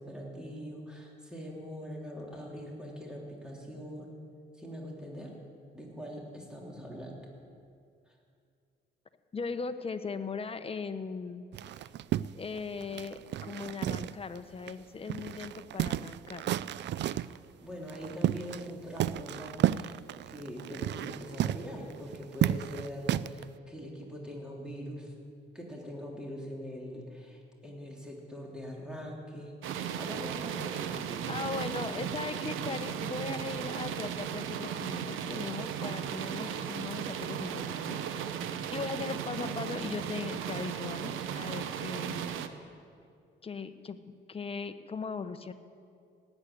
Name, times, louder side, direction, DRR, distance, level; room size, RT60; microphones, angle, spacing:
voice 1, 0.0-4.1 4.6-5.3 5.7-7.3 17.0-17.2 17.6-20.0 20.3-25.1 25.5-31.4, equal, 5° right, -2 dB, 3.2 m, -42 dB
voice 2, 9.3-11.5 11.8-11.9 12.3-16.5 31.3-38.3 38.7-42.4 43.4-45.5, left 5 dB, 30° left, 9 dB, 1.0 m, -39 dB
sound 1, 11.5-14.4 14.7-14.8 15.1-17.4 17.9-18.7 19.0-23.4, right 12 dB, 65° right, 0.4 m, -32 dB
sound 2, 29.6-42.5, right 8 dB, 90° right, 0.9 m, -36 dB
18.0 x 8.2 x 9.3 m, 2.4 s
cardioid pair, 90°, 20 cm